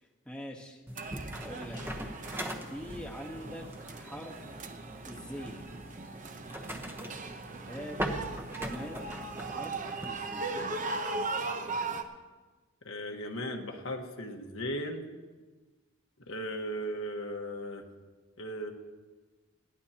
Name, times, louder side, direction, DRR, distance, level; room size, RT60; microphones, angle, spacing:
voice 1, 0.2-0.8 1.3-2.1 2.7-4.4 5.1-5.7 7.7-8.0 8.5-9.8 10.0-10.7, equal, 5° left, 0 dB, 1.2 m, -43 dB
sound 1, 0.9-10.1, right 1 dB, 10° right, 1.0 m, -41 dB
sound 2, 1.0-12.0, right 3 dB, 40° right, 0.8 m, -39 dB
voice 2, 12.8-15.0 16.3-17.8 18.4-18.7, equal, 70° left, 2 dB, 1.5 m, -37 dB
20.5 x 15.5 x 2.9 m, 1.3 s
head